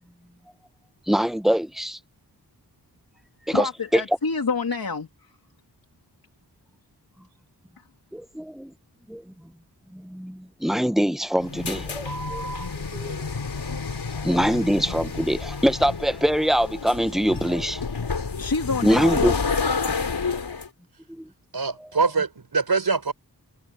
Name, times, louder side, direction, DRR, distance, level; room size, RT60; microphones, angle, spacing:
voice 1, 1.1-2.0 3.5-4.0 8.1-8.7 9.1-9.2 9.9-12.4 12.7-13.2 14.2-17.8 18.8-19.3 21.2-21.3 21.8-21.9, equal, ahead, 1.0 m, -24 dB
voice 2, 3.5-5.1 18.4-19.5, left 4 dB, 60° left, 3.0 m, -27 dB
sound 1, 11.4-20.7, left 4 dB, 80° left, 5.5 m, -29 dB
voice 3, 21.5-23.1, right 4 dB, 65° right, 4.9 m, -23 dB
wide cardioid pair, 55°, 39 cm